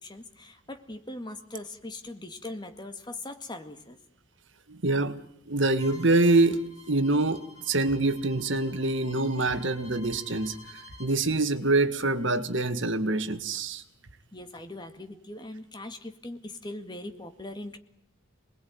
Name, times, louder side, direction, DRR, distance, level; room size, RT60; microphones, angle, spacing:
voice 1, 0.0-4.0 14.3-17.8, left 2 dB, 20° left, 7 dB, 2.1 m, -40 dB
voice 2, 4.7-5.2 5.5-13.8, right 2 dB, 60° right, 10 dB, 1.8 m, -25 dB
Bowed string instrument, 5.8-11.2, left 2 dB, 75° left, 3.8 m, -51 dB
28.0 x 21.0 x 9.5 m, 0.71 s
head